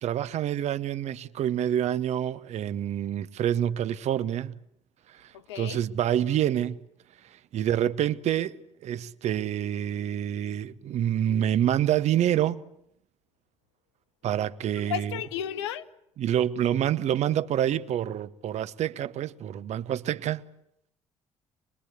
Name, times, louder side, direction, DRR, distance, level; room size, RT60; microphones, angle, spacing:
voice 1, 0.0-4.5 5.2-6.8 7.5-12.6 14.2-15.1 16.2-20.4, right 10 dB, 50° right, 1.0 m, -27 dB
voice 2, 5.3-5.8 14.8-15.9, left 9 dB, 70° left, 1.0 m, -33 dB
26.0 x 22.0 x 8.4 m
figure-of-eight pair, 45°, 15 cm